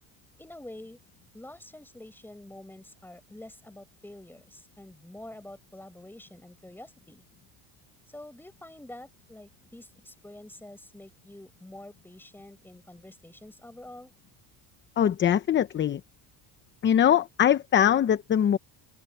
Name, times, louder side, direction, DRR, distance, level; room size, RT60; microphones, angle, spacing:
voice 1, 0.4-1.0 1.3-7.3 8.1-14.1, left 1 dB, 5° left, 6.1 m, -47 dB
voice 2, 15.0-16.0 16.8-18.6, left 9 dB, 30° left, 0.7 m, -22 dB
cardioid pair, 130°, 41 cm